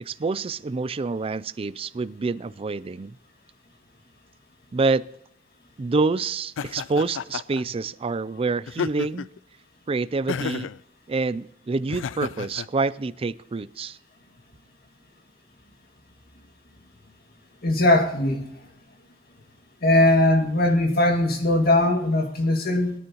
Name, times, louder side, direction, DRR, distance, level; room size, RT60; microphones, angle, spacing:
voice 1, 0.1-3.1 4.7-5.1 5.8-9.3 9.9-10.7 11.1-14.0, right 3 dB, 30° right, 17 dB, 0.4 m, -27 dB
Laughter, 6.6-7.6 8.7-9.4 10.3-10.8 11.9-12.7, left 6 dB, 75° left, 0.4 m, -31 dB
voice 2, 17.6-18.4 19.8-22.9, left 1 dB, 50° left, 3 dB, 2.1 m, -20 dB
22.0 x 9.6 x 3.0 m, 0.78 s
head